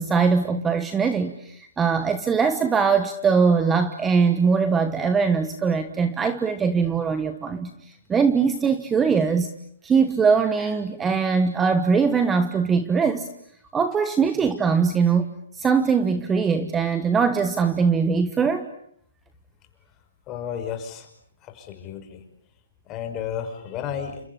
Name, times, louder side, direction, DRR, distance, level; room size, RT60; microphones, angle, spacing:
voice 1, 0.0-9.5 9.8-13.3 13.7-15.3 15.5-18.7, right 5 dB, 10° right, 10 dB, 1.3 m, -21 dB
voice 2, 20.3-21.1 21.4-22.2 22.9-24.2, left 8 dB, 20° left, 6 dB, 5.5 m, -32 dB
30.0 x 27.0 x 7.2 m, 0.67 s
hypercardioid pair, 155°, 0 cm